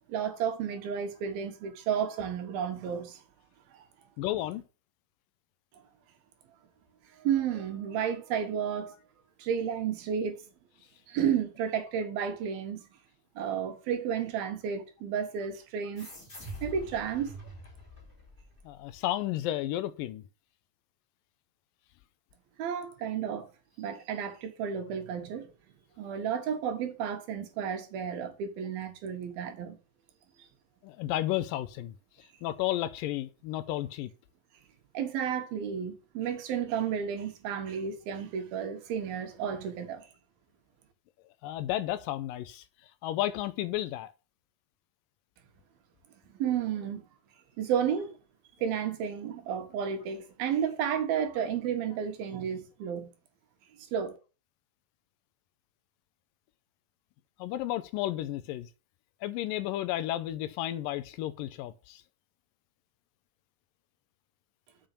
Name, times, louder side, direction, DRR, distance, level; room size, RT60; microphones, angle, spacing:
voice 1, 0.1-3.2 3.7-3.8 7.2-8.9 9.4-10.5 11.1-12.8 13.4-16.1 16.6-17.4 22.6-23.5 23.8-25.5 26.0-29.8 34.9-40.1 46.3-47.0 47.6-48.1 48.6-53.1 53.8-54.2, right 8 dB, 85° right, 3.3 m, -32 dB
voice 2, 4.2-4.6 18.7-20.2 30.8-31.9 32.4-34.1 41.4-42.6 43.0-44.1 57.4-58.7 59.2-62.0, left 14 dB, 80° left, 2.2 m, -32 dB
sound 1, 16.0-19.0, equal, 15° left, 2.8 m, -45 dB
7.0 x 5.6 x 6.6 m
omnidirectional pair, 4.2 m